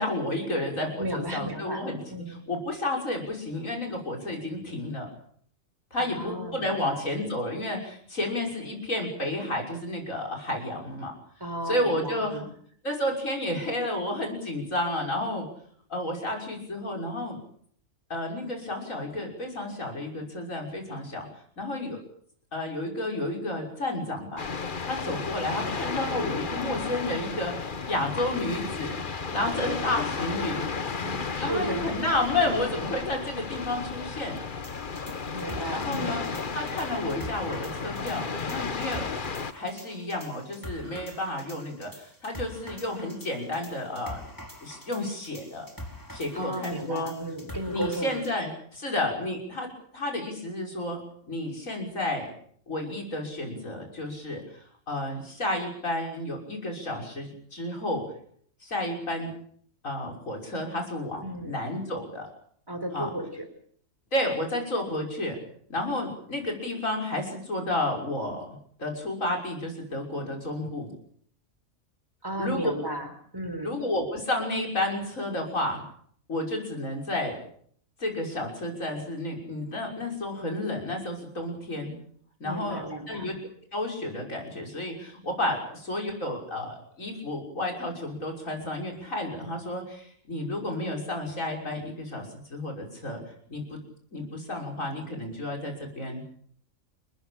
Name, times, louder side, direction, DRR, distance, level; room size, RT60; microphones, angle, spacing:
voice 1, 0.0-5.1 5.9-11.1 11.7-12.4 12.8-15.5 15.9-17.4 18.1-21.3 21.6-22.0 22.5-24.5 24.8-29.0 29.3-30.6 31.4-34.4 35.7-36.2 36.5-39.1 39.5-44.2 44.6-45.7 46.1-47.1 47.7-51.0 51.3-52.3 52.7-54.4 54.9-58.0 58.6-59.3 59.8-62.3 62.9-63.1 64.1-65.4 65.7-68.5 68.8-70.9 72.4-72.7 73.6-75.8 76.3-77.3 78.0-81.9 82.4-83.4 83.7-93.2 93.5-93.8 94.1-96.2, left 1 dB, 85° left, 1 dB, 6.6 m, -31 dB
voice 2, 1.0-2.4 6.0-7.0 11.4-12.5 31.0-32.0 35.3-36.4 46.3-48.2 61.2-61.7 62.7-63.5 72.2-73.8 82.4-83.3, right 1 dB, 15° right, 6 dB, 4.2 m, -34 dB
sound 1, 24.4-39.5, left 5 dB, 40° left, 1.3 m, -33 dB
sound 2, 34.6-48.3, equal, 15° left, 4.2 m, -45 dB
29.0 x 15.5 x 8.9 m, 0.62 s
omnidirectional pair, 1.3 m